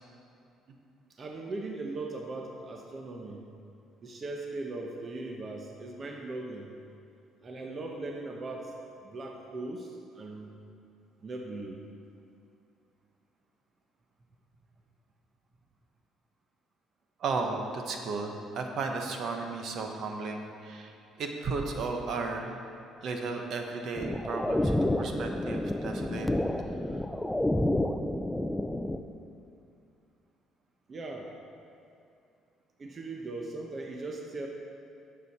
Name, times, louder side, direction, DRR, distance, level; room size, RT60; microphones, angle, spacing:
voice 1, 1.2-3.4 4.0-6.7 7.4-8.7 9.0-10.5 11.2-11.8 30.9-31.3 32.8-34.5, right 2 dB, 30° right, 1 dB, 0.8 m, -39 dB
voice 2, 17.2-22.6 23.0-26.3 26.9-27.0, right 4 dB, 55° right, 3 dB, 1.0 m, -34 dB
sound 1, 24.0-29.0, left 1 dB, 5° left, 0.4 m, -29 dB
11.0 x 7.5 x 4.2 m, 2.5 s
cardioid pair, 130°, 0 cm